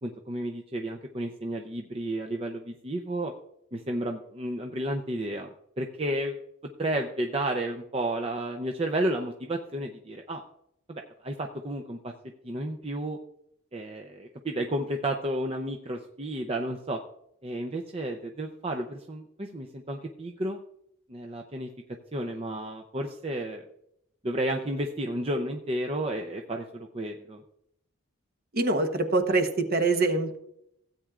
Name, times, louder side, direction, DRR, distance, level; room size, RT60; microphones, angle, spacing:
voice 1, 0.0-3.3 3.7-5.5 5.8-6.4 6.8-10.4 10.9-12.1 12.4-13.2 13.7-17.0 17.4-20.6 21.1-21.7 22.1-23.6 24.2-27.4, right 1 dB, 25° right, 3 dB, 0.6 m, -32 dB
voice 2, 28.5-30.4, right 3 dB, 45° right, 6 dB, 1.0 m, -24 dB
16.0 x 8.7 x 2.5 m, 0.77 s
head